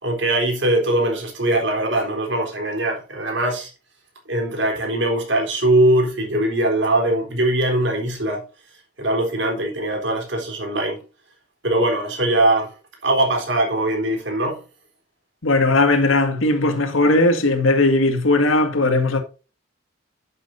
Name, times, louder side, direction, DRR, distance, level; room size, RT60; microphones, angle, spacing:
voice 1, 0.0-3.7 4.3-8.4 9.0-11.0 11.6-12.7 13.0-14.6, right 1 dB, 60° right, 3.9 m, -21 dB
voice 2, 15.4-19.2, left 2 dB, 90° left, 2.0 m, -18 dB
11.5 x 7.8 x 2.7 m
head